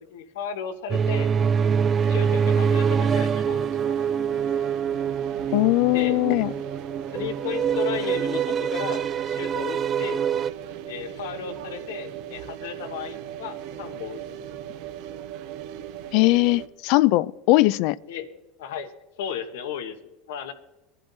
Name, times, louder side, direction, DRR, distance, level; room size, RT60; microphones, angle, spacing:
voice 1, 0.1-1.3 2.1-4.0 5.9-6.2 7.1-10.2 10.8-14.4 18.0-18.3 18.6-18.9 19.2-20.0 20.3-20.5, left 8 dB, 90° left, 8 dB, 1.1 m, -34 dB
sound 1, 0.9-10.5, right 7 dB, 30° right, 0.3 m, -25 dB
sound 2, 2.0-16.7, right 10 dB, 65° right, 0.8 m, -38 dB
voice 2, 5.5-6.5 16.1-18.0, left 20 dB, 60° left, 21 dB, 0.4 m, -20 dB
20.0 x 11.0 x 2.7 m, 1.0 s
supercardioid pair, 135°, 0 cm